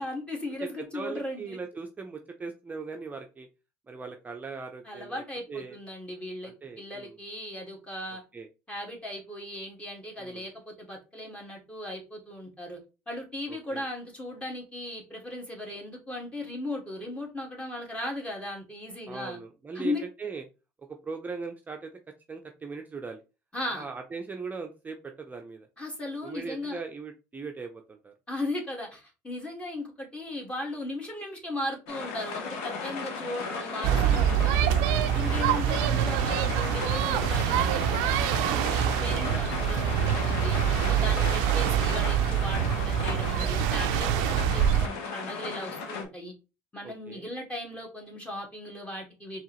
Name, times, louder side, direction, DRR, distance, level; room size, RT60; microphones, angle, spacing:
voice 1, 0.0-1.6 4.9-8.2 8.7-12.8 13.1-19.4 19.7-20.0 23.5-23.8 25.8-26.8 28.3-34.7 35.1-40.6 40.8-46.3 46.7-49.4, left 1 dB, 15° left, 0 dB, 1.9 m, -37 dB
voice 2, 0.6-3.5 3.9-5.8 6.4-7.2 8.3-8.5 10.2-10.5 13.5-13.9 19.1-20.4 20.8-21.9 22.3-23.2 23.7-25.7 26.2-28.1 34.0-34.3 41.0-41.3 46.8-47.2, right 4 dB, 25° right, 4 dB, 0.6 m, -40 dB
sound 1, 31.9-46.0, left 4 dB, 85° left, 0.9 m, -36 dB
sound 2, 33.8-44.9, right 9 dB, 80° right, 0.4 m, -25 dB
4.6 x 3.1 x 3.0 m, 0.30 s
supercardioid pair, 80°, 7 cm